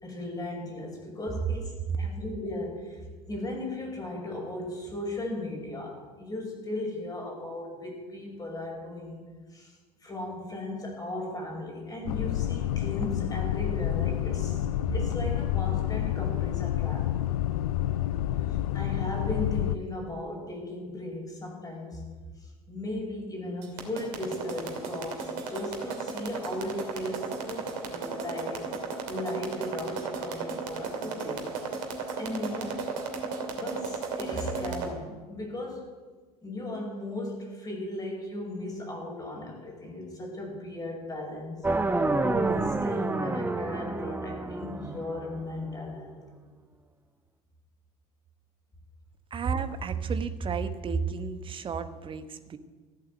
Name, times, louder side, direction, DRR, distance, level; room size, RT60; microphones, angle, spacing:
voice 1, 0.0-9.7 10.0-17.1 18.5-22.1 22.4-28.7 29.1-31.5 31.8-31.9 32.2-32.9 33.6-36.0 36.4-46.2, left 1 dB, 20° left, 0 dB, 5.8 m, -37 dB
sound 1, 12.1-19.8, left 12 dB, 60° left, 0.5 m, -29 dB
sound 2, 23.6-34.9, right 5 dB, 55° right, 2.7 m, -34 dB
sound 3, 41.6-45.7, right 2 dB, 10° right, 0.8 m, -29 dB
voice 2, 49.3-52.6, right 5 dB, 25° right, 10 dB, 1.1 m, -32 dB
15.0 x 8.6 x 7.8 m, 1.4 s
figure-of-eight pair, 70°, 20 cm